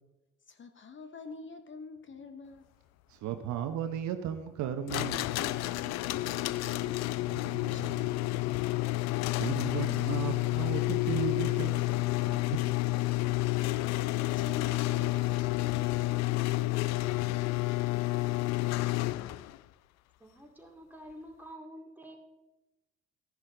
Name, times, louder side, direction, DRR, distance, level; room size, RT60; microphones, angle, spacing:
voice 1, 0.5-2.7 5.3-8.4 13.8-16.6, left 4 dB, 35° left, 1.0 m, -47 dB
voice 2, 3.1-5.3 7.3-7.4 7.6-7.9 9.4-12.6, right 9 dB, 60° right, 0.9 m, -36 dB
sound 1, 4.9-19.6, left 19 dB, 55° left, 0.4 m, -30 dB
voice 3, 20.2-22.2, equal, 5° right, 2.5 m, -48 dB
13.0 x 10.5 x 3.8 m
hypercardioid pair, 50°, 32 cm